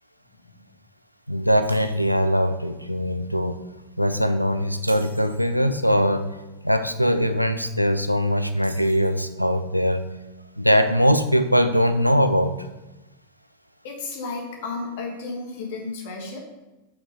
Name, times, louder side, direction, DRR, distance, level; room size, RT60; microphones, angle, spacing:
voice 1, 0.3-0.6 13.8-16.4, left 3 dB, 50° left, 1 dB, 1.7 m, -33 dB
voice 2, 1.3-3.6 4.0-6.3 6.6-10.0 10.6-12.6, equal, 90° left, 9 dB, 0.5 m, -21 dB
Shatter, 1.7-2.5 2.9-3.1 4.7-5.6 8.6-9.4, right 2 dB, 80° right, 0.6 m, -44 dB
6.1 x 6.0 x 4.9 m, 1.1 s
figure-of-eight pair, 90°, 0 cm